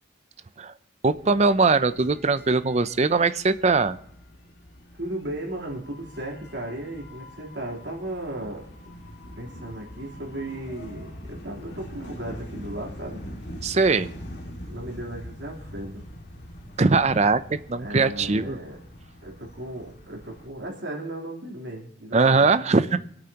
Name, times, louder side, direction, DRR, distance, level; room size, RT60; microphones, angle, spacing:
voice 1, 1.0-4.0 13.6-14.1 16.8-18.6 22.1-23.0, right 4 dB, 35° right, 13 dB, 0.5 m, -21 dB
sound 1, 1.1-20.5, equal, 60° left, 2.2 m, -43 dB
voice 2, 5.0-9.1 9.4-13.2 14.7-16.1 17.8-18.8 19.2-22.5, right 1 dB, 70° right, -2 dB, 3.5 m, -36 dB
24.5 x 8.8 x 2.9 m, 0.69 s
head